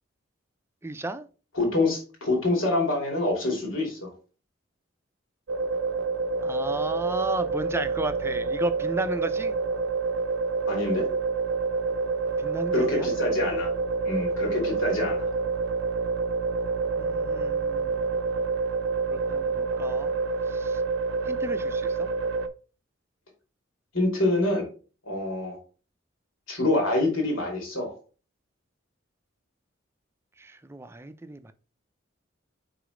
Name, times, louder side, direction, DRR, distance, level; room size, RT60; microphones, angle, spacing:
voice 1, 0.8-1.3 6.4-9.5 12.4-13.1 17.0-18.1 19.1-20.1 20.5-20.8 21.2-22.1 30.4-31.5, right 2 dB, 15° right, 0.4 m, -34 dB
voice 2, 1.5-4.1 10.7-11.1 12.7-13.7 14.0-15.3 23.9-24.7 25.0-25.6 26.5-27.9, left 2 dB, 90° left, 2.5 m, -26 dB
sound 1, 5.5-22.5, right 4 dB, 70° right, 0.6 m, -28 dB
5.0 x 4.0 x 5.0 m
head